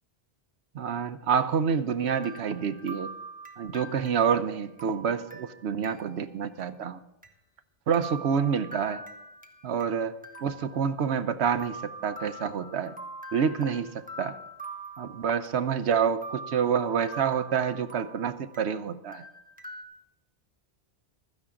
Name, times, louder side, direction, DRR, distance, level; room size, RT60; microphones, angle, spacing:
voice 1, 0.7-3.1 3.6-7.0 7.9-9.0 9.6-10.1 10.4-12.9 13.3-14.4 15.0-19.2, right 7 dB, 85° right, 12 dB, 1.0 m, -28 dB
sound 1, 2.1-6.3 6.6-6.7 7.2-7.3 7.9-9.9 10.2-11.3 11.6-15.8 16.2-18.8 19.1-19.8, right 2 dB, 10° right, 1.2 m, -44 dB
16.0 x 13.0 x 3.8 m, 0.88 s
omnidirectional pair, 1.1 m